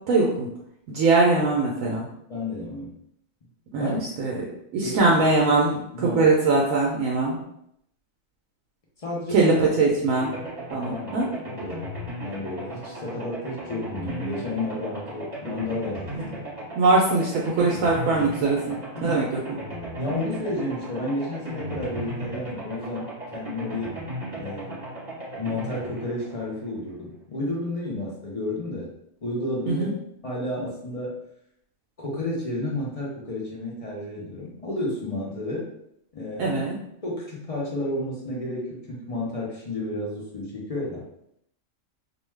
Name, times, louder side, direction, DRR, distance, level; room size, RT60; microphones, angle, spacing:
voice 1, 0.1-0.5 0.9-2.1 3.7-4.4 4.7-7.4 9.3-10.3 10.7-11.3 16.1-16.2 16.8-19.4 29.7-29.9 36.4-36.8, right 3 dB, 75° right, -3 dB, 0.9 m, -22 dB
voice 2, 2.3-2.9 3.8-4.1 4.8-5.0 5.9-6.2 9.0-9.5 10.8-11.9 12.2-16.1 19.0-19.2 20.0-24.0 24.4-24.9 25.4-28.9 29.2-29.9 30.2-31.2 32.0-35.7 36.1-36.6 37.0-41.0, left 1 dB, 45° left, -4 dB, 0.4 m, -31 dB
sound 1, 10.2-27.1, right 1 dB, 30° right, 1.2 m, -36 dB
2.6 x 2.2 x 3.1 m, 0.75 s
omnidirectional pair, 1.4 m